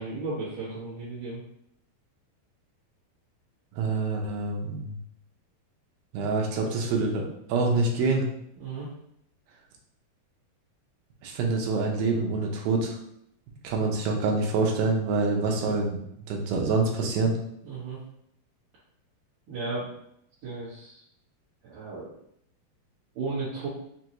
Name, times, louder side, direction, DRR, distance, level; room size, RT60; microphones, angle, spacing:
voice 1, 0.0-1.4 8.6-8.9 15.6-15.8 17.6-18.0 19.5-19.9 20.4-21.0 21.6-22.1 23.2-23.7, right 3 dB, 65° right, -11 dB, 2.5 m, -34 dB
voice 2, 3.7-5.0 6.1-8.3 11.2-13.0 13.6-16.0 16.3-17.3, right 3 dB, 80° right, 0 dB, 2.5 m, -26 dB
6.3 x 2.3 x 2.9 m, 0.73 s
omnidirectional pair, 4.2 m